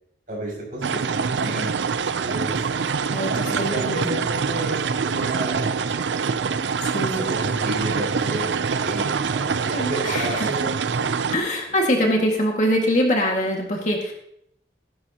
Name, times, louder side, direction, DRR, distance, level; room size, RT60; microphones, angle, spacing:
voice 1, 0.3-1.7 2.0-2.6 3.3-6.4 7.3-10.7 11.3-11.4, right 1 dB, 45° right, -3 dB, 6.2 m, -32 dB
sound 1, 0.8-11.4, right 5 dB, 80° right, 0.5 m, -25 dB
voice 2, 3.1-4.0 6.8-7.2 9.7-10.5 11.3-14.1, equal, 40° left, 0 dB, 2.0 m, -23 dB
16.0 x 12.5 x 2.9 m, 0.74 s
head